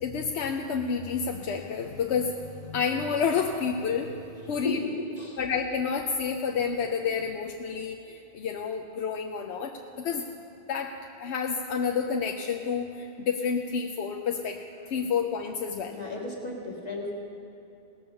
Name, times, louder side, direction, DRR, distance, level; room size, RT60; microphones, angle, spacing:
voice 1, 0.0-4.8 5.4-10.3 10.7-14.6 14.9-16.0, left 6 dB, 85° left, 2 dB, 0.9 m, -29 dB
voice 2, 4.5-5.4 15.9-17.1, left 2 dB, 40° left, -2 dB, 2.0 m, -34 dB
18.0 x 7.0 x 6.7 m, 2.8 s
omnidirectional pair, 1.1 m